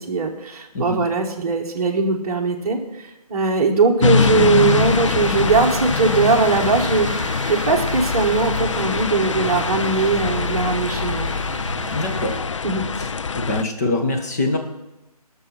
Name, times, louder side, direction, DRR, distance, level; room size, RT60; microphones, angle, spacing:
voice 1, 0.0-7.1 7.5-11.3 12.6-12.8, right 4 dB, 25° right, -3 dB, 1.3 m, -20 dB
sound 1, 4.0-13.6, left 5 dB, 50° left, 0.4 m, -23 dB
sound 2, 4.2-12.7, right 4 dB, 55° right, 0.9 m, -34 dB
voice 2, 11.9-12.4 13.0-13.1 13.3-14.6, left 2 dB, 25° left, 2 dB, 1.5 m, -23 dB
18.0 x 6.3 x 5.8 m, 0.97 s
figure-of-eight pair, 160°, 20 cm